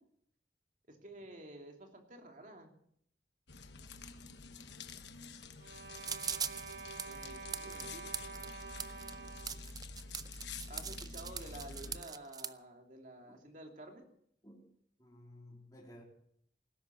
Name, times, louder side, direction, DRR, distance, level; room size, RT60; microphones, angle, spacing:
voice 1, 0.9-2.7 7.0-8.2 10.7-14.1, right 1 dB, 45° right, 3 dB, 2.9 m, -51 dB
sound 1, 3.5-12.0, left 4 dB, 80° left, 1.2 m, -49 dB
sound 2, 5.6-9.7, right 4 dB, 65° right, 1.1 m, -48 dB
sound 3, 6.0-12.5, right 7 dB, 20° right, 0.6 m, -41 dB
voice 2, 15.0-16.0, left 1 dB, 20° left, -3 dB, 3.4 m, -56 dB
18.5 x 10.5 x 7.1 m, 0.68 s
head